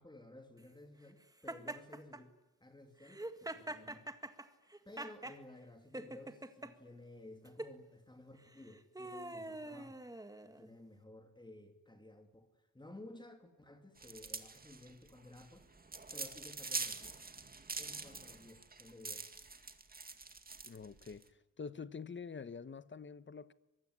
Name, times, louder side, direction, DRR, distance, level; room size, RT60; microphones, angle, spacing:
voice 1, 0.0-3.2 3.5-4.1 4.8-10.0 10.4-15.7 16.1-17.2 17.8-19.3, left 1 dB, 15° left, 2.8 m, -55 dB
Laughter, 1.5-2.2 3.0-5.4 5.9-6.7 7.4-7.7 8.5-10.7, right 1 dB, 10° right, 1.8 m, -45 dB
sound 1, 14.0-21.2, right 3 dB, 25° right, 2.1 m, -44 dB
voice 2, 20.6-21.2 21.6-23.5, left 5 dB, 35° left, 1.0 m, -46 dB
24.0 x 23.5 x 9.8 m
wide cardioid pair, 140°, 35 cm